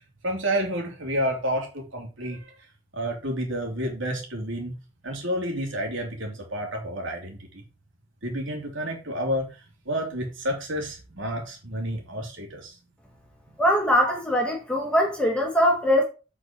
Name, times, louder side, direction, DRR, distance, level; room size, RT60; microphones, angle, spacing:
voice 1, 0.2-2.4 2.9-4.7 5.0-7.6 8.2-9.5 9.8-12.7, equal, 75° right, 2.9 m, -30 dB
voice 2, 13.6-16.0, equal, 5° left, 1.8 m, -22 dB
8.2 x 4.9 x 4.6 m
head